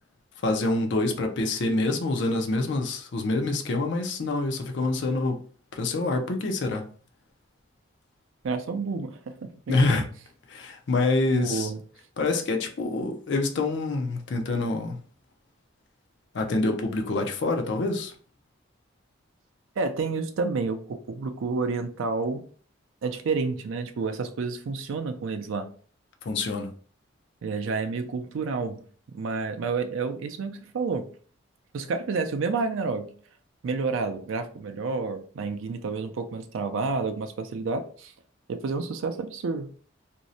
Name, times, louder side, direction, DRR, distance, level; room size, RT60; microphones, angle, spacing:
voice 1, 0.4-5.4 5.7-6.9 9.7-10.1 10.5-11.7 12.2-15.0 16.3-18.1 26.2-26.7, left 2 dB, 60° left, 0.4 m, -26 dB
voice 2, 8.4-10.0 11.3-11.8 19.8-22.4 23.0-25.7 27.4-28.8 29.1-31.1 31.7-33.1 33.6-38.1 38.5-39.7, right 4 dB, 75° right, 0.4 m, -30 dB
2.6 x 2.0 x 2.6 m
head